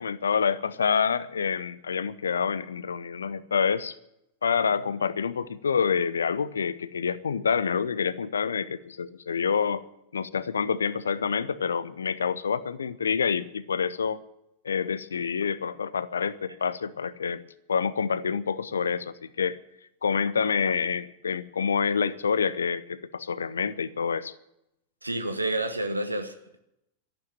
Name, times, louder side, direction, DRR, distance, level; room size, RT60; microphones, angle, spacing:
voice 1, 0.0-3.9 4.4-9.8 10.1-14.2 14.6-17.4 17.7-19.6 20.0-24.3, left 6 dB, 70° left, 17 dB, 0.7 m, -27 dB
voice 2, 25.0-26.6, right 1 dB, 85° right, 8 dB, 1.2 m, -29 dB
12.5 x 11.5 x 8.7 m, 0.83 s
figure-of-eight pair, 90°, 0 cm